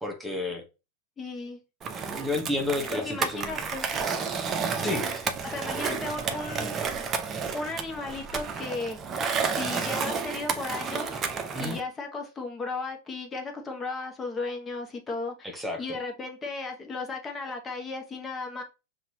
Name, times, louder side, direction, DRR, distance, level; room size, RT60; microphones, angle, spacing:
voice 1, 0.0-0.6 2.0-3.5 4.8-5.3 5.9-6.0 11.5-11.8 15.4-16.0, left 2 dB, 5° right, 1.1 m, -31 dB
voice 2, 1.2-1.6 2.9-3.9 5.4-6.8 7.5-9.0 9.5-11.2 11.6-15.5 15.8-18.6, left 3 dB, 20° left, 1.3 m, -35 dB
Skateboard, 1.8-11.8, right 5 dB, 30° right, 0.7 m, -31 dB
5.8 x 2.7 x 2.8 m
hypercardioid pair, 100°, 0 cm